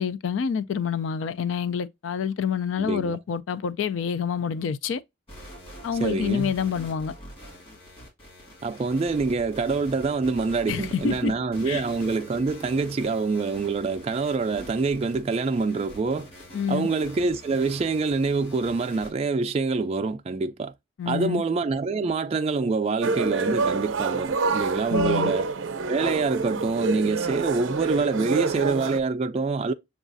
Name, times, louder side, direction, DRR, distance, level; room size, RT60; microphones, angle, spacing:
voice 1, 0.0-5.0 5.8-7.1 10.7-11.3 11.7-11.8 16.5-16.9 21.0-21.4 24.9-25.3, left 7 dB, 70° left, 0.3 m, -27 dB
voice 2, 2.8-3.2 6.0-6.5 8.6-16.3 16.7-20.7 21.1-25.5 25.9-29.7, right 4 dB, 30° right, 0.3 m, -26 dB
sound 1, 5.3-19.1, equal, 30° left, 2.3 m, -45 dB
sound 2, 23.0-29.0, right 4 dB, 80° right, 0.5 m, -27 dB
7.0 x 2.4 x 2.5 m
head